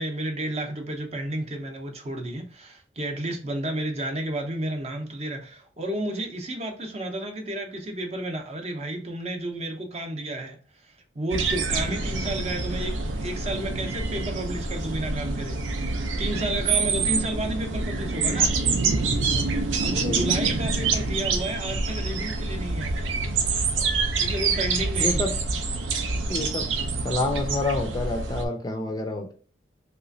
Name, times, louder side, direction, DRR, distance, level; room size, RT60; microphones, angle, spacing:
voice 1, 0.0-10.6 11.1-12.9 13.2-15.6 16.2-18.6 19.8-23.4 24.2-25.3, right 1 dB, 35° right, 0.6 m, -32 dB
sound 1, 11.3-28.4, right 4 dB, 90° right, 0.6 m, -26 dB
voice 2, 20.0-20.4 25.0-25.4 26.3-26.7 27.0-29.3, left 2 dB, 20° left, 0.4 m, -28 dB
3.3 x 3.0 x 2.6 m
head